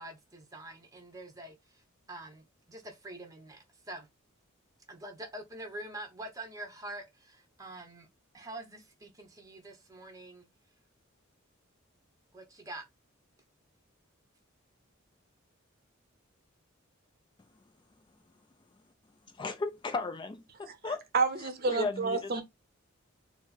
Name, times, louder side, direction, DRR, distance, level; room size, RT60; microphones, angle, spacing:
voice 1, 0.0-1.8 2.1-4.1 4.9-8.1 8.3-10.5 12.3-12.8, right 1 dB, 15° right, 0.9 m, -45 dB
voice 2, 19.3-21.0 21.7-22.4, left 3 dB, 20° left, 0.3 m, -35 dB
voice 3, 21.1-22.4, right 4 dB, 50° right, 0.7 m, -29 dB
4.2 x 2.1 x 4.2 m
head